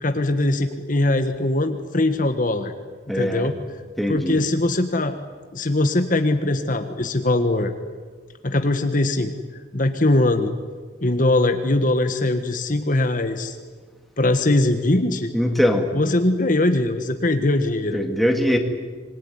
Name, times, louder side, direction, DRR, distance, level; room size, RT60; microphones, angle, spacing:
voice 1, 0.0-2.7 3.1-3.6 4.1-5.2 5.5-7.7 8.4-9.3 9.7-10.5 11.0-13.6 14.2-15.3 15.9-18.0, left 2 dB, 40° left, 7 dB, 1.5 m, -21 dB
voice 2, 3.1-3.5 4.0-4.4 15.3-15.9 17.9-18.6, equal, ahead, 3 dB, 2.2 m, -21 dB
26.0 x 22.0 x 9.8 m, 1.5 s
head